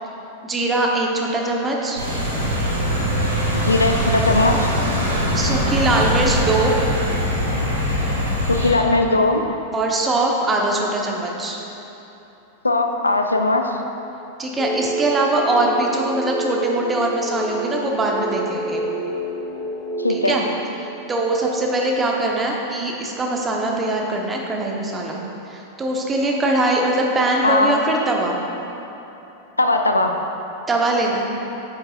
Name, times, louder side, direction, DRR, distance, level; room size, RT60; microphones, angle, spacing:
voice 1, 0.4-2.0 5.3-6.7 9.7-11.6 14.4-18.8 20.1-20.4 21.1-25.2 25.5-28.4 30.7-31.3, right 2 dB, 15° right, -1 dB, 1.0 m, -22 dB
sound 1, 2.0-8.7, equal, 80° right, 1.4 m, -22 dB
voice 2, 3.5-4.7 8.5-9.5 12.6-13.8 20.0-20.4 27.4-27.8 29.6-30.1, left 2 dB, 80° left, 5 dB, 0.5 m, -19 dB
sound 2, 14.6-20.3, right 2 dB, 30° left, 0.7 m, -28 dB
9.7 x 7.5 x 2.5 m, 3.0 s
figure-of-eight pair, 90°, 0 cm